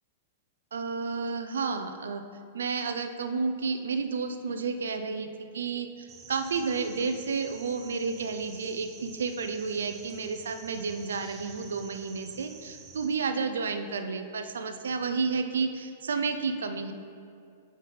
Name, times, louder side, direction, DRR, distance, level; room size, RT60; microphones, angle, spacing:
voice 1, 0.7-2.2 2.5-5.3 5.5-16.9, right 4 dB, 90° right, 8 dB, 0.5 m, -31 dB
sound 1, 6.1-13.1, right 4 dB, 30° right, 0.8 m, -49 dB
7.4 x 5.6 x 3.3 m, 2.4 s
hypercardioid pair, 135°, 0 cm